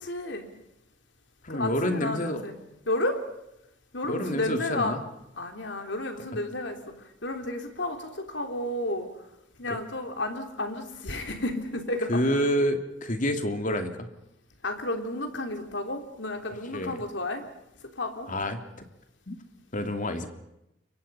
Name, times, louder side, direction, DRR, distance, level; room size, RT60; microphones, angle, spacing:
voice 1, 0.0-0.5 1.5-2.5 2.9-3.2 3.9-5.0 5.4-9.1 9.6-12.2 14.6-17.4 18.0-18.3, left 1 dB, 65° left, 5 dB, 3.4 m, -32 dB
voice 2, 1.4-2.4 4.0-5.0 9.6-9.8 12.1-14.1 16.7-17.0 18.3-18.6 19.3-19.4 19.7-20.3, equal, 40° left, 7 dB, 2.4 m, -28 dB
29.0 x 24.0 x 5.7 m, 0.87 s
head